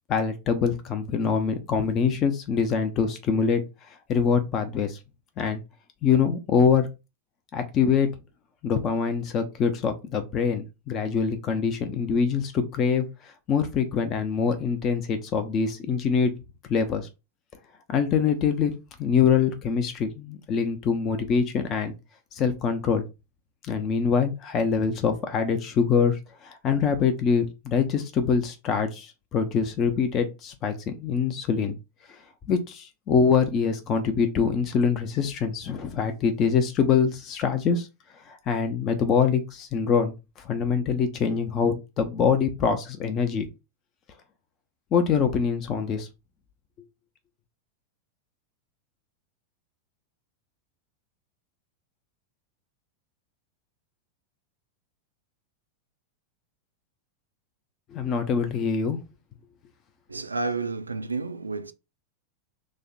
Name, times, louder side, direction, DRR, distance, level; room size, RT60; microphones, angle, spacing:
voice 1, 0.1-3.6 4.1-5.0 5.4-5.6 6.0-6.9 7.5-8.1 8.6-16.3 16.7-17.1 17.9-18.7 19.0-21.9 22.3-23.0 23.7-31.8 32.5-37.9 38.3-40.2 40.5-43.5 44.9-46.1 57.9-59.0, left 6 dB, 30° left, 0.5 m, -24 dB
voice 2, 60.1-61.7, right 3 dB, 80° right, 0.3 m, -30 dB
3.1 x 2.1 x 3.9 m
figure-of-eight pair, 90°, 0 cm